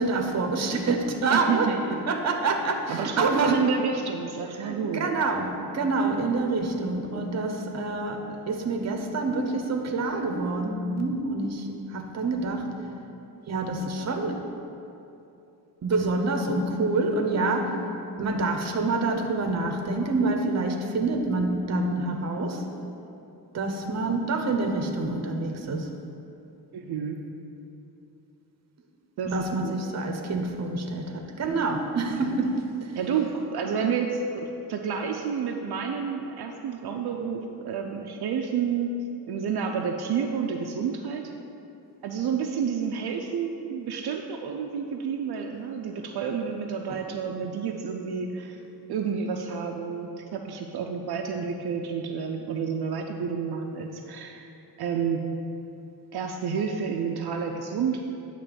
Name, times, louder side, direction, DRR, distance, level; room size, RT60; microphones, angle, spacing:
voice 1, 0.0-1.7 2.1-3.6 4.6-12.7 13.5-14.4 15.8-17.7 18.2-22.6 23.5-25.9 29.2-32.9 46.9-47.0, right 3 dB, 40° right, 3 dB, 0.9 m, -27 dB
voice 2, 1.3-2.0 2.9-5.0 26.7-27.2 29.2-29.8 32.3-32.4 32.9-38.9 39.3-41.3 42.0-48.6 48.9-54.5 54.8-55.2 56.1-58.0, right 6 dB, 70° right, 2 dB, 0.6 m, -30 dB
9.7 x 3.3 x 6.9 m, 2.8 s
wide cardioid pair, 120°, 39 cm